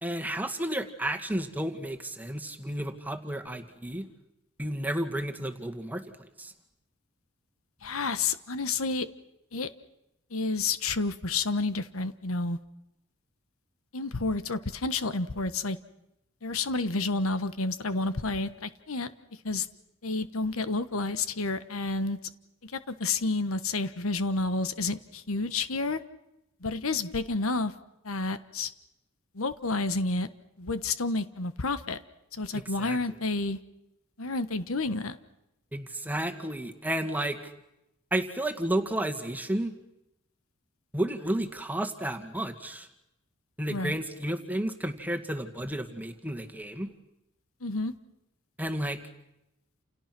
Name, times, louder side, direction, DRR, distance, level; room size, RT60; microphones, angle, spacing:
voice 1, 0.0-4.1 4.6-6.5 32.5-33.0 35.7-37.5 38.1-39.7 40.9-42.9 43.6-46.9 48.6-49.0, right 1 dB, 10° right, 5 dB, 1.9 m, -32 dB
voice 2, 7.8-9.1 9.5-9.7 10.3-12.6 13.9-15.8 16.4-19.1 19.4-19.7 20.0-22.2 22.6-26.0 26.6-27.7 28.0-28.7 29.3-30.3 30.6-32.0 32.3-33.6 34.2-35.2 43.7-44.0 47.6-47.9, left 3 dB, 80° left, 12 dB, 1.3 m, -30 dB
29.5 x 29.0 x 6.1 m, 0.87 s
head